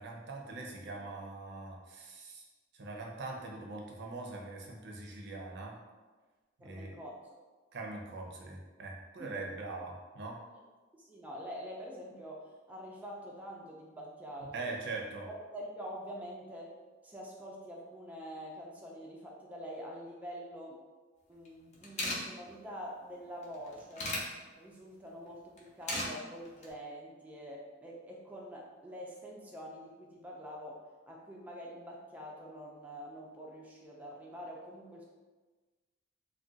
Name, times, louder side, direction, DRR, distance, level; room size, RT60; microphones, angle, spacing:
voice 1, 0.0-2.4 2.7-5.7 6.6-7.0 7.7-10.4 14.5-15.3, right 3 dB, 65° right, -1 dB, 0.5 m, -42 dB
voice 2, 6.6-7.3 9.2-9.4 10.9-14.7 15.3-16.7 17.0-20.8 21.3-24.2 24.6-35.1, equal, 10° right, -3 dB, 0.3 m, -46 dB
sound 1, 21.5-21.6 21.7-22.2 23.4-24.2 25.6-26.1 26.5-26.7, left 1 dB, 40° left, 0.6 m, -35 dB
2.4 x 2.2 x 3.8 m, 1.3 s
head